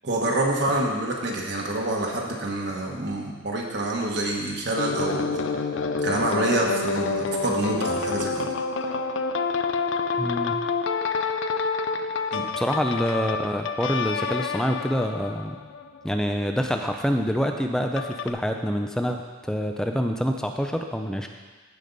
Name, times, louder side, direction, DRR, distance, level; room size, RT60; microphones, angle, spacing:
voice 1, 0.0-5.4 6.0-8.5 12.3-12.5, right 1 dB, 55° right, -1 dB, 1.2 m, -27 dB
sound 1, 4.8-16.2 18.0-18.3, left 4 dB, 70° left, 0.5 m, -28 dB
voice 2, 10.2-10.6 12.1-12.2 12.6-15.6 16.0-19.2 19.5-21.3, equal, 5° left, 4 dB, 0.4 m, -26 dB
15.0 x 5.2 x 4.0 m, 1.4 s
head